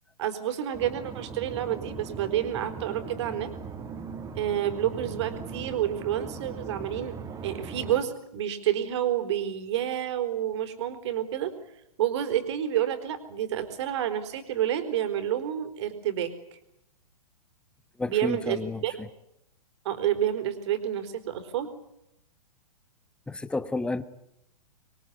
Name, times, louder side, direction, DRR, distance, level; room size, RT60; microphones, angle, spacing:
voice 1, 0.2-3.5 4.4-7.2 7.4-11.5 12.0-16.3 18.0-18.9 19.8-21.7, right 11 dB, 45° right, 4.2 m, -29 dB
sound 1, 0.7-8.0, right 5 dB, 15° right, 2.9 m, -39 dB
voice 2, 18.0-19.1 23.3-24.0, left 2 dB, 5° left, 1.2 m, -31 dB
26.0 x 23.0 x 9.6 m
figure-of-eight pair, 110°, 20 cm